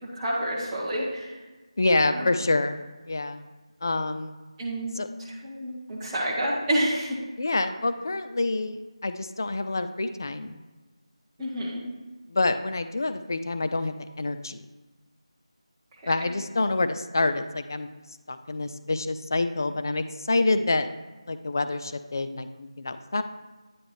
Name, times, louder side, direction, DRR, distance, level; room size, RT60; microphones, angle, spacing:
voice 1, 0.1-1.4 2.1-2.3 4.6-7.1 11.4-11.8 16.0-16.3, right 1 dB, 10° right, -8 dB, 0.8 m, -29 dB
voice 2, 1.8-3.4 3.8-4.4 5.0-5.1 7.4-10.6 12.3-14.6 16.1-17.9 18.3-20.9 21.3-23.2, left 2 dB, 35° left, 10 dB, 0.3 m, -27 dB
9.4 x 3.7 x 3.1 m, 1.2 s
figure-of-eight pair, 165°, 3 cm